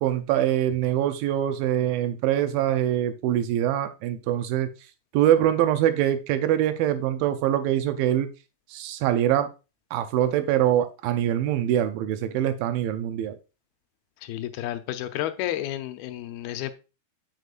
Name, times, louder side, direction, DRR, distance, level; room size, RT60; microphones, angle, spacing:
voice 1, 0.0-4.7 5.1-8.3 8.7-9.5 9.9-13.4, right 11 dB, 80° right, 2.3 m, -24 dB
voice 2, 14.2-16.8, left 13 dB, 85° left, 2.5 m, -31 dB
6.6 x 6.4 x 2.4 m
omnidirectional pair, 4.3 m